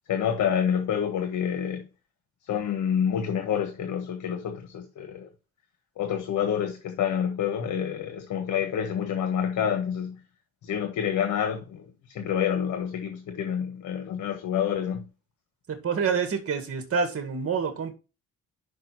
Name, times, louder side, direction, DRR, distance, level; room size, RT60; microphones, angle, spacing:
voice 1, 0.1-1.8 2.5-5.3 6.0-10.1 10.6-15.0, left 8 dB, 75° left, 1.3 m, -28 dB
voice 2, 15.7-17.9, right 6 dB, 50° right, 2.2 m, -27 dB
6.0 x 5.2 x 6.1 m
cardioid pair, 90°, 30 cm